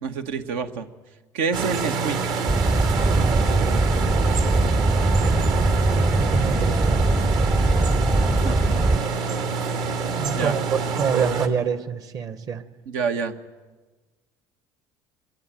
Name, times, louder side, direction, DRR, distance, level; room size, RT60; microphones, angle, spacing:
voice 1, 0.0-0.9 1.3-2.2 8.4-8.6 10.3-10.5 12.9-13.3, right 5 dB, 90° right, 7 dB, 2.0 m, -26 dB
sound 1, 1.5-11.5, right 5 dB, 65° right, 2.7 m, -26 dB
sound 2, 2.5-9.0, right 2 dB, 20° right, 0.8 m, -21 dB
voice 2, 3.1-4.1 6.3-7.0 10.2-12.6, right 7 dB, 50° right, 12 dB, 1.7 m, -27 dB
25.5 x 22.0 x 9.4 m, 1.3 s
cardioid pair, 110°, 8 cm